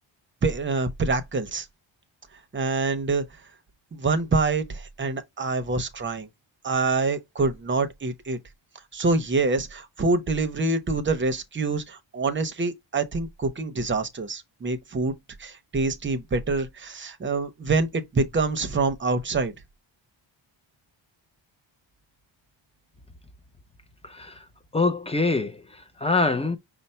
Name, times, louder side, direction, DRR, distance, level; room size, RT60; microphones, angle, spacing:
voice 1, 0.4-1.7 2.5-3.2 3.9-6.3 6.6-8.4 8.9-15.1 15.4-19.5, right 3 dB, 25° right, 0.6 m, -26 dB
voice 2, 24.0-24.4 24.7-26.6, left 3 dB, 15° left, 0.3 m, -25 dB
5.5 x 2.0 x 4.1 m
wide cardioid pair, 140°, 47 cm